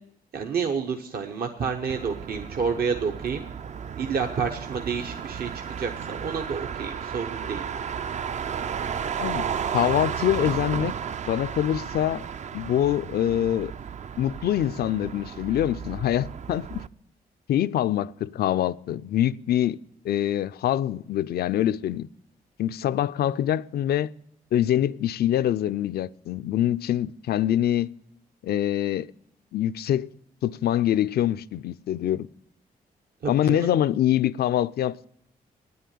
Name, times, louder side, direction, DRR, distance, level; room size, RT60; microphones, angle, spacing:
voice 1, 0.3-3.4 4.0-5.5 5.8-7.6 33.2-33.7, right 6 dB, 70° right, 1.1 m, -29 dB
Motor vehicle (road), 1.9-16.9, right 7 dB, 45° right, 0.4 m, -33 dB
voice 2, 9.7-10.9 11.3-12.2 12.5-13.7 14.2-16.8 17.5-19.8 20.0-22.1 22.6-24.1 24.5-27.9 28.4-29.1 29.5-30.1 30.4-32.3 33.3-35.0, left 11 dB, 75° left, 0.4 m, -24 dB
9.5 x 9.4 x 8.4 m
cardioid pair, 70°, 16 cm